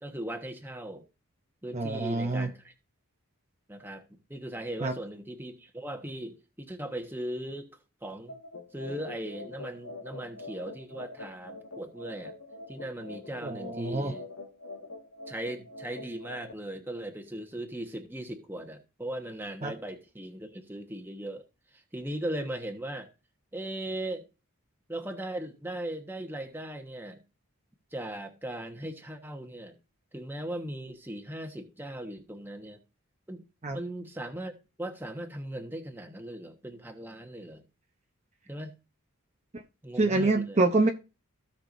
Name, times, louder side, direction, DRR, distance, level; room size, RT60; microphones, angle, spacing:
voice 1, 0.0-1.0 1.6-2.7 3.7-4.0 4.3-7.7 8.0-8.4 8.7-12.4 12.7-14.2 15.3-21.4 21.7-23.1 23.5-24.3 24.9-27.2 27.9-29.8 30.1-32.8 33.3-33.4 33.7-34.5 34.8-37.6 38.5-38.7 39.8-40.6, right 1 dB, 10° right, 1.2 m, -38 dB
voice 2, 1.7-2.5 4.8-4.9 13.4-14.1 19.6-19.7 33.6-33.8 39.5-39.6 40.0-40.9, right 2 dB, 30° right, 0.8 m, -26 dB
sound 1, 8.3-16.5, left 2 dB, 90° left, 1.8 m, -45 dB
16.5 x 5.9 x 2.6 m
head